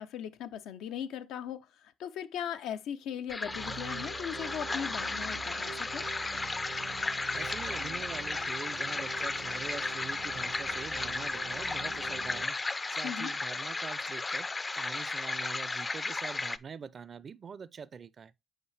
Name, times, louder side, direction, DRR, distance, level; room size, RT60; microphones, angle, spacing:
voice 1, 0.0-1.7 2.0-6.1 13.0-13.3, left 9 dB, 90° left, 0.5 m, -38 dB
sound 1, 3.3-16.6, left 3 dB, 25° left, 0.4 m, -34 dB
sound 2, 3.4-12.4, right 8 dB, 80° right, 0.7 m, -46 dB
voice 2, 7.3-12.6 12.9-18.3, right 6 dB, 45° right, 0.4 m, -44 dB
7.9 x 4.9 x 3.2 m
cardioid pair, 90°, 0 cm